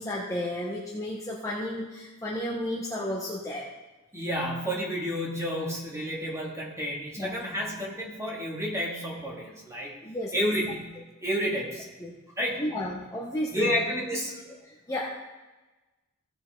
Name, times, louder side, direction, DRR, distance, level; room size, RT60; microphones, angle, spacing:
voice 1, 0.0-3.7 7.2-7.4 10.0-10.5 12.0-12.1 12.6-13.7 14.1-14.2 14.6-15.1, left 1 dB, 15° left, -5 dB, 1.2 m, -33 dB
voice 2, 4.1-9.9 10.3-10.9 11.2-11.9 12.4-12.6 13.5-14.3, equal, 15° right, -4 dB, 2.5 m, -30 dB
16.5 x 5.7 x 3.9 m, 1.1 s
head